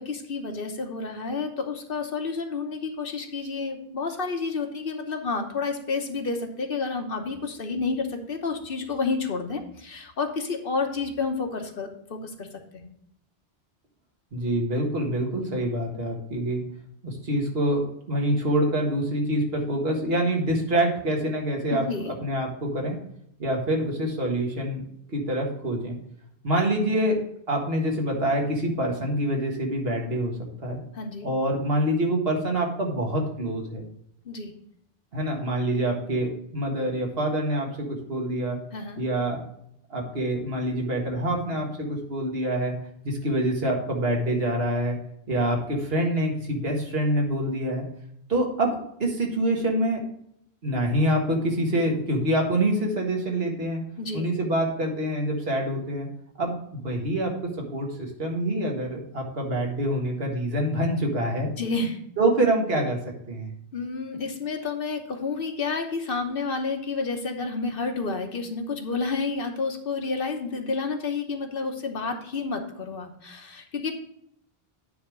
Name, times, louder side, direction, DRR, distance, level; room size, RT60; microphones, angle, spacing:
voice 1, 0.0-12.5 12.7-12.9 21.7-22.1 30.9-31.3 34.2-34.5 38.7-39.0 54.0-54.3 61.6-62.0 63.7-73.9, left 4 dB, 60° left, 4 dB, 1.2 m, -30 dB
voice 2, 14.3-16.6 17.0-21.8 22.2-23.0 23.4-24.8 25.1-26.0 26.4-30.8 31.2-33.8 35.1-38.6 39.0-39.4 39.9-42.7 43.0-45.0 45.3-47.8 48.3-50.0 50.6-53.8 54.1-56.1 56.4-57.3 57.6-61.5 62.2-63.0 63.3-63.5, right 1 dB, 70° right, 1 dB, 1.9 m, -26 dB
9.3 x 3.5 x 6.2 m, 0.73 s
omnidirectional pair, 1.0 m